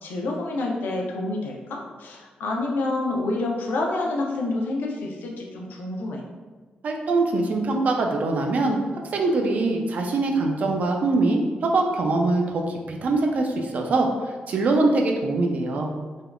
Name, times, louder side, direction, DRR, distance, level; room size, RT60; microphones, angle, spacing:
voice 1, 0.0-6.2, left 2 dB, 85° left, 0 dB, 0.5 m, -28 dB
voice 2, 6.8-8.8 9.1-15.9, right 2 dB, 50° right, 2 dB, 0.4 m, -23 dB
3.4 x 2.3 x 2.2 m, 1.4 s
wide cardioid pair, 160°, 3 cm